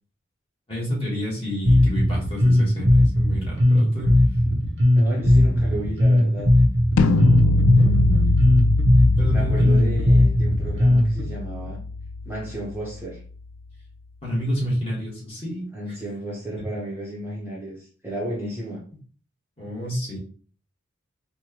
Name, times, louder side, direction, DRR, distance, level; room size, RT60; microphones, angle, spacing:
voice 1, 0.7-4.2 4.4-4.6 7.7-8.4 9.2-10.0 14.2-15.7 19.6-20.2, equal, 30° left, -5 dB, 1.4 m, -28 dB
Bass guitar, 1.6-11.2, left 1 dB, 55° right, 0.7 m, -18 dB
voice 2, 5.0-6.5 9.3-11.8 12.3-13.2 15.7-18.8, right 1 dB, 10° right, -5 dB, 0.7 m, -33 dB
sound 1, 7.0-12.9, left 2 dB, 85° left, 0.3 m, -22 dB
4.4 x 2.2 x 2.9 m, 0.43 s
head